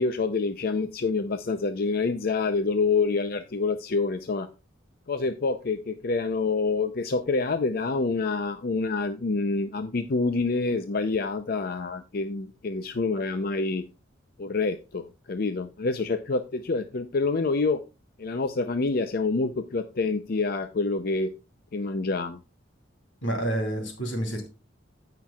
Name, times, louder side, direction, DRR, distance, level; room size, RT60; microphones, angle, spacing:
voice 1, 0.0-4.5 5.1-13.8 14.4-17.8 18.2-21.3 21.7-22.4, left 3 dB, 50° left, 9 dB, 0.5 m, -27 dB
voice 2, 23.2-24.5, right 1 dB, 85° left, 4 dB, 3.0 m, -29 dB
16.0 x 5.9 x 2.3 m, 0.30 s
head